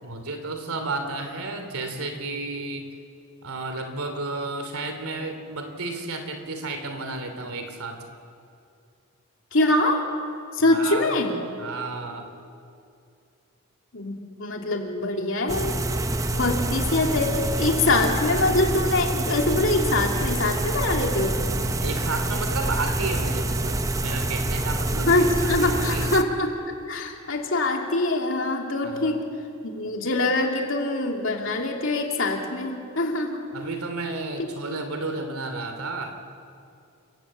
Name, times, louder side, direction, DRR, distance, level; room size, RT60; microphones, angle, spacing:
voice 1, 0.0-2.9 3.4-8.0 10.7-11.1 11.6-12.3 21.8-26.2 28.8-29.2 33.5-36.2, right 3 dB, 85° right, 6 dB, 2.8 m, -32 dB
voice 2, 9.5-10.0 10.5-11.3 13.9-15.8 16.3-21.6 25.0-26.5 26.9-29.3 29.6-33.4, left 2 dB, 60° left, 1 dB, 2.8 m, -24 dB
sound 1, 15.5-26.2, right 2 dB, 15° right, 0.7 m, -26 dB
29.5 x 15.0 x 8.7 m, 2.5 s
head